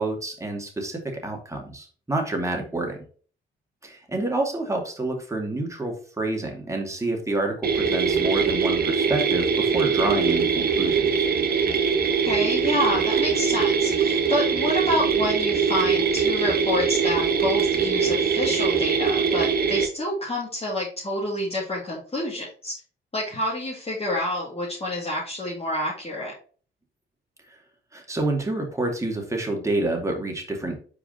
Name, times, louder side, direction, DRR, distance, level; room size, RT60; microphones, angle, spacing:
voice 1, 0.0-3.0 3.8-11.3 27.9-30.8, right 2 dB, 15° right, 1 dB, 2.4 m, -28 dB
sound 1, 7.6-19.9, right 6 dB, 50° right, 1.2 m, -22 dB
voice 2, 12.2-22.7 23.1-26.3, left 1 dB, 30° left, -6 dB, 2.5 m, -28 dB
5.0 x 4.8 x 4.2 m, 0.41 s
supercardioid pair, 65°, 21 cm